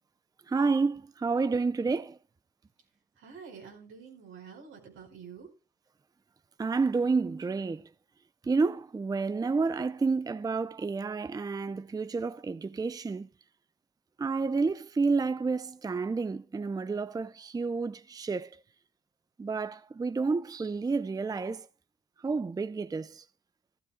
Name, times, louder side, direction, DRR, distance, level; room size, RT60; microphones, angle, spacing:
voice 1, 0.5-2.2 6.6-7.9 8.4-13.3 14.2-18.6 19.4-21.7 22.2-23.2, right 4 dB, 20° right, 0.5 m, -30 dB
voice 2, 3.2-5.5, right 6 dB, 85° right, 4.8 m, -48 dB
15.0 x 13.5 x 2.3 m
cardioid pair, 90°, 20 cm